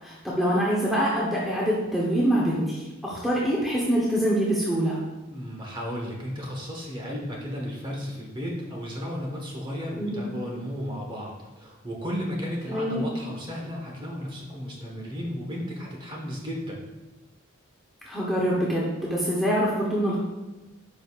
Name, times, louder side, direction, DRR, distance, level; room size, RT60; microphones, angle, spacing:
voice 1, 0.0-5.0 10.0-10.2 12.7-13.1 18.1-20.2, equal, ahead, -6 dB, 0.9 m, -25 dB
voice 2, 5.3-16.8, equal, 25° right, -2 dB, 1.3 m, -34 dB
9.6 x 5.2 x 2.4 m, 1.1 s
head